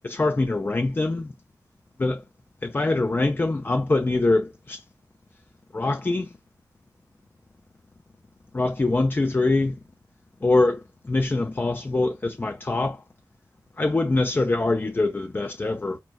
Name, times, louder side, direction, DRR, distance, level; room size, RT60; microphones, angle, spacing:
voice 1, 0.0-1.3 2.0-2.2 2.6-4.8 5.7-6.3 8.5-9.8 10.4-13.0 13.8-16.0, left 2 dB, 30° left, 0.3 m, -24 dB
4.1 x 2.2 x 2.3 m
wide cardioid pair, 65°, 8 cm